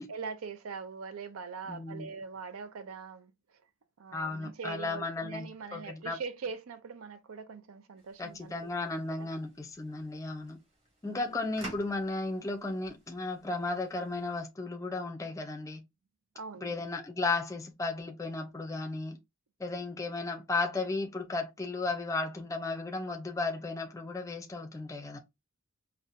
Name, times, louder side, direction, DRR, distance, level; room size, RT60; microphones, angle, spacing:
voice 1, 0.1-3.6 4.0-8.5 8.8-9.3 11.0-11.5 16.3-16.8, right 5 dB, 75° right, 0.5 m, -42 dB
voice 2, 1.7-2.1 4.1-6.2 8.2-10.6 11.0-15.8 16.6-19.2 19.6-25.2, left 3 dB, 15° left, 0.4 m, -35 dB
sound 1, 8.0-14.5, right 1 dB, 30° right, 1.3 m, -52 dB
4.0 x 2.1 x 2.5 m
head